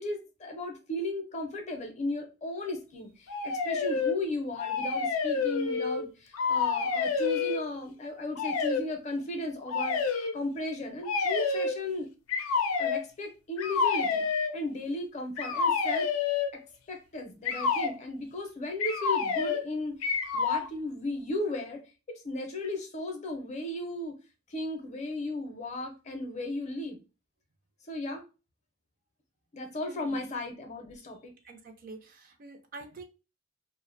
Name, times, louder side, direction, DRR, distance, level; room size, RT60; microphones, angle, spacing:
voice 1, 0.0-12.1 12.8-16.1 16.5-21.8 22.1-24.2 24.5-27.0 27.9-28.2 29.5-31.3, left 1 dB, 35° left, 0.5 m, -35 dB
sound 1, 3.3-4.2 4.6-6.1 6.3-7.6 8.4-8.8 9.7-10.3 11.0-11.8 12.3-13.1 13.6-14.5 15.4-16.6 17.4-18.0 18.8-19.7 20.0-20.7, left 5 dB, 85° left, 0.4 m, -28 dB
voice 2, 29.8-30.2 31.4-33.0, right 3 dB, 40° right, 0.4 m, -46 dB
2.5 x 2.0 x 2.4 m
head